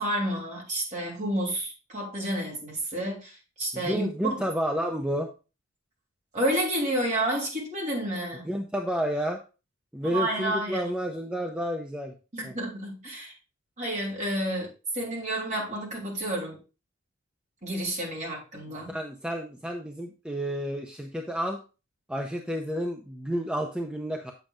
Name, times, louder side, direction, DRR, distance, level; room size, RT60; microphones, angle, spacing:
voice 1, 0.0-4.4 6.3-8.5 10.0-10.9 12.3-13.3 13.8-14.7 14.9-16.6 17.6-18.9, right 1 dB, 40° right, -2 dB, 3.1 m, -30 dB
voice 2, 3.7-5.3 8.4-9.4 9.9-12.1 12.4-12.5 18.9-21.6 22.1-24.3, equal, 5° right, 3 dB, 0.6 m, -30 dB
7.8 x 7.2 x 2.5 m, 0.32 s
head